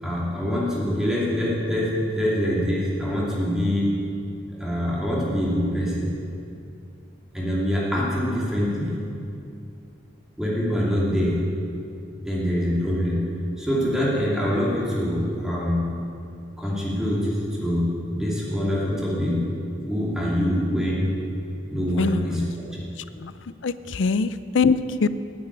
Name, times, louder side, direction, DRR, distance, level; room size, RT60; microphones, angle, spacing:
voice 1, 0.0-3.9 4.6-6.2 7.3-9.0 10.4-11.4 12.2-13.3 13.6-15.9 16.6-19.4 19.8-21.1 21.7-22.8 23.8-23.9, equal, 5° right, -6 dB, 2.6 m, -24 dB
voice 2, 22.0-22.5 23.2-23.3 23.6-25.1, left 4 dB, 80° left, 14 dB, 0.5 m, -23 dB
9.8 x 8.2 x 9.8 m, 2.5 s
head